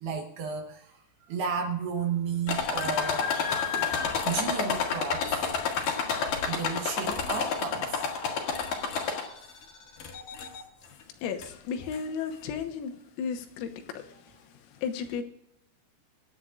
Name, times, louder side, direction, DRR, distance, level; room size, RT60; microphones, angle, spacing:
voice 1, 0.0-3.5 3.7-5.5 6.5-8.1, right 6 dB, 65° right, 3 dB, 2.8 m, -33 dB
sound 1, 2.5-9.5 10.0-10.6 11.4-11.5 11.9-12.0, left 6 dB, 55° left, 2.8 m, -30 dB
voice 2, 11.2-12.9 13.2-13.7 13.9-14.1 14.8-15.2, left 6 dB, 85° left, 6 dB, 3.8 m, -33 dB
25.0 x 9.7 x 2.5 m, 0.78 s
omnidirectional pair, 5.8 m